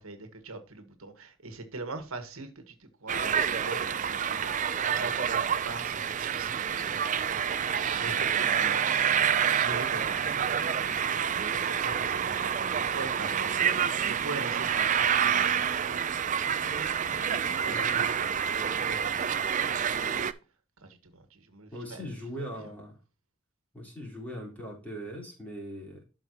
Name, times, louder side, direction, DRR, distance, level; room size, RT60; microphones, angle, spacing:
voice 1, 0.0-7.4 7.7-16.0 16.4-16.6 17.2-20.3 20.8-22.7, right 3 dB, 80° right, 1.5 m, -43 dB
sound 1, 3.1-20.3, right 8 dB, 35° right, 0.4 m, -28 dB
voice 2, 17.7-18.1 21.7-23.0 23.7-26.0, equal, 5° left, 3.7 m, -40 dB
12.5 x 5.1 x 2.9 m
head